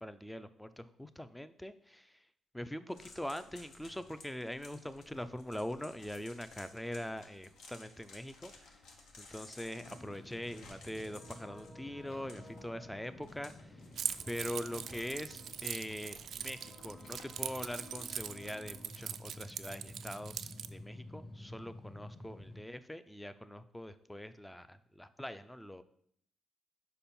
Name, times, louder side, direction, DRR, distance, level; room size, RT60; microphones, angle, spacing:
voice 1, 0.0-2.2 2.5-8.8 9.2-13.8 14.3-25.8, equal, 5° left, 13 dB, 0.4 m, -43 dB
sound 1, 2.9-18.2, left 3 dB, 75° left, 1.0 m, -57 dB
sound 2, 9.7-22.6, left 1 dB, 40° left, 1.7 m, -52 dB
Keys jangling, 14.0-20.7, right 8 dB, 65° right, 0.3 m, -41 dB
5.0 x 4.3 x 5.4 m, 0.67 s
cardioid pair, 90°, 0 cm